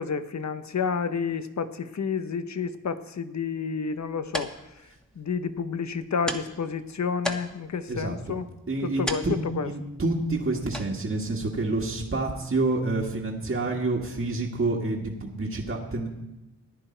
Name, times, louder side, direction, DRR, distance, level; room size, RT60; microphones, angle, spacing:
voice 1, 0.0-4.8 5.1-8.5 8.8-9.3 9.5-9.7, left 5 dB, 60° left, 11 dB, 0.9 m, -30 dB
sound 1, 3.9-13.1, equal, ahead, 1.4 m, -40 dB
voice 2, 7.9-8.3 8.7-9.4 9.6-16.1, right 2 dB, 40° right, -1 dB, 1.7 m, -28 dB
15.0 x 10.0 x 4.5 m, 0.97 s
cardioid pair, 45°, 32 cm